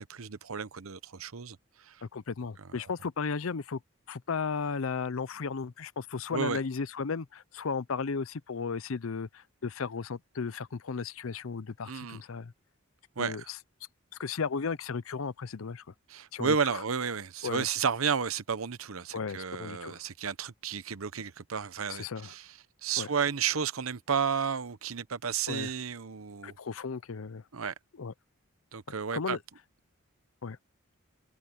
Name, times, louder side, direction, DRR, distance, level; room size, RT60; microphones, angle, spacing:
voice 1, 0.0-1.6 1.9-2.0 6.3-6.6 11.8-12.2 13.2-13.5 16.1-22.5 22.8-26.5 27.5-27.7 28.7-29.4, right 6 dB, 80° right, 0.8 m, -32 dB
voice 2, 2.0-3.8 4.1-12.5 13.2-13.6 14.2-15.9 16.3-16.8 17.4-17.7 19.1-20.0 21.9-22.3 23.0-23.1 25.5-25.7 26.4-27.4 28.0-28.1 29.1-29.4 30.4-30.6, left 5 dB, 75° left, 0.6 m, -35 dB
head